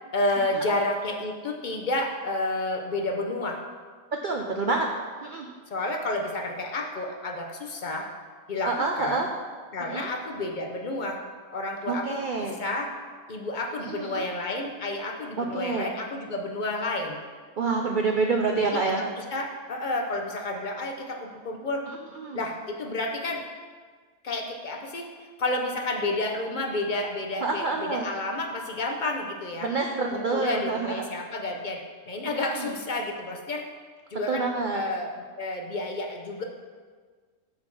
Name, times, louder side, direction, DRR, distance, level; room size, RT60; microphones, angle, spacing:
voice 1, 0.1-3.6 5.7-8.1 8.5-8.7 9.0-9.2 9.7-11.2 11.5-12.9 13.3-17.2 18.6-21.9 22.3-23.4 24.2-29.7 30.1-33.6 34.1-35.1 35.4-36.4, left 2 dB, 50° left, 2 dB, 0.6 m, -30 dB
voice 2, 4.2-4.9 5.2-5.5 8.6-9.3 9.9-10.1 11.9-12.6 13.8-14.3 15.4-15.9 17.6-19.0 21.9-22.4 27.4-28.1 29.6-31.1 32.3-32.7 34.3-34.8, right 3 dB, 75° right, 2 dB, 0.4 m, -28 dB
7.6 x 4.4 x 6.0 m, 1.5 s
omnidirectional pair, 1.6 m